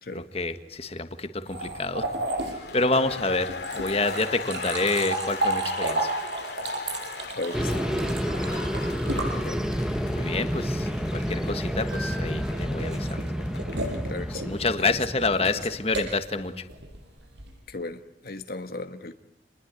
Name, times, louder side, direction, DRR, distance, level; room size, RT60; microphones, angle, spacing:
voice 1, 0.1-2.1 2.5-6.1 10.0-13.3 14.5-16.6, left 3 dB, 35° left, 1.5 m, -28 dB
sound 1, 1.5-10.1 11.9-17.6, right 2 dB, 85° right, 7.3 m, -33 dB
sound 2, 2.4-14.1, left 4 dB, 75° left, 2.3 m, -38 dB
voice 2, 7.3-7.8 9.3-9.7 14.1-14.5 14.8-14.9 15.3-15.4 17.7-19.1, left 2 dB, 55° left, 1.3 m, -36 dB
sound 3, 7.5-15.9, equal, 5° right, 1.2 m, -29 dB
28.5 x 21.0 x 9.5 m
head